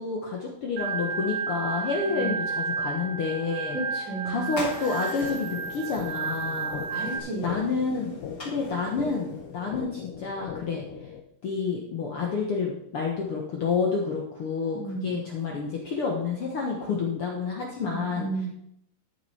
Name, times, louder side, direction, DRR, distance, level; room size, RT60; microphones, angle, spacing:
voice 1, 0.0-3.8 4.2-6.8 7.4-8.1 8.4-10.8 11.4-18.5, left 4 dB, 55° left, -1 dB, 1.7 m, -29 dB
Organ, 0.8-7.2, right 5 dB, 65° right, 2.4 m, -32 dB
voice 2, 3.7-4.5 6.9-7.6 14.7-15.2 17.8-18.5, right 3 dB, 50° right, -6 dB, 5.1 m, -33 dB
sound 1, 4.5-9.7, left 1 dB, 20° left, 3.6 m, -42 dB
sound 2, 5.2-11.2, left 7 dB, 85° left, 2.5 m, -40 dB
13.0 x 6.7 x 4.3 m, 0.76 s
omnidirectional pair, 3.8 m